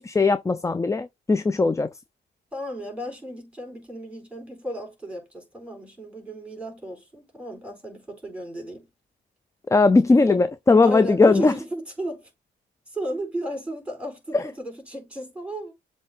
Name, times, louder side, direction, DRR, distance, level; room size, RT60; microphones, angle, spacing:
voice 1, 0.0-1.9 9.7-11.5 14.3-14.4, left 3 dB, 15° left, 0.4 m, -19 dB
voice 2, 2.5-8.9 10.1-10.4 10.8-12.3 12.9-15.7, right 1 dB, 5° right, 4.2 m, -34 dB
7.4 x 3.3 x 3.8 m
cardioid pair, 90°, 20 cm